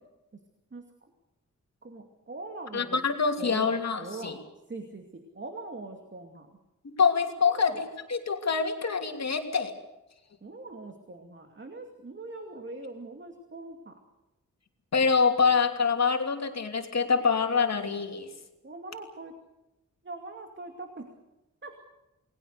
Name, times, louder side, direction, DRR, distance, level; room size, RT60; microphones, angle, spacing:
voice 1, 1.8-3.0 3.4-4.3 4.7-6.5 7.4-7.8 10.4-14.0 18.6-19.3 20.0-21.1 21.6-21.8, right 2 dB, 40° right, 4 dB, 2.5 m, -42 dB
voice 2, 2.7-4.4 6.8-9.7 14.9-18.3, left 5 dB, 60° left, 4 dB, 2.9 m, -25 dB
29.0 x 20.0 x 6.7 m, 0.97 s
wide cardioid pair, 140°, 31 cm